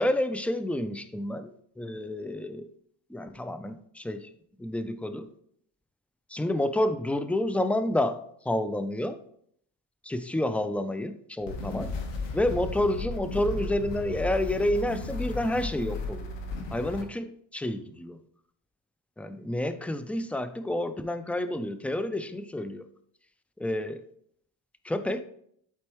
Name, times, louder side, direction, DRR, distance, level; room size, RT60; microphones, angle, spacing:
voice 1, 0.0-2.7 3.1-4.3 4.6-5.3 6.3-9.2 10.1-11.9 12.3-16.3 16.7-18.2 19.2-22.8 23.6-24.0 24.8-25.2, left 1 dB, 5° left, 10 dB, 0.5 m, -29 dB
sound 1, 11.4-17.0, left 3 dB, 85° left, 1.5 m, -35 dB
12.0 x 4.4 x 3.1 m, 0.67 s
cardioid pair, 100°, 42 cm